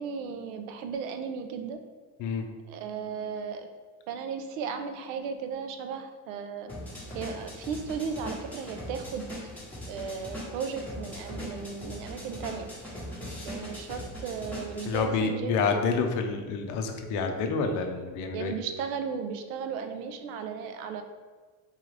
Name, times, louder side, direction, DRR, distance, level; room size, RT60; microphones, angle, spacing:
voice 1, 0.0-1.8 2.7-3.7 4.1-6.7 7.1-9.2 9.9-12.7 13.4-15.9 18.3-21.0, right 6 dB, 80° right, 7 dB, 0.7 m, -35 dB
sound 1, 6.7-15.0, equal, 5° left, 0.9 m, -40 dB
voice 2, 14.9-18.5, left 5 dB, 50° left, 5 dB, 0.6 m, -28 dB
4.0 x 3.8 x 3.2 m, 1.5 s
cardioid pair, 165°, 40 cm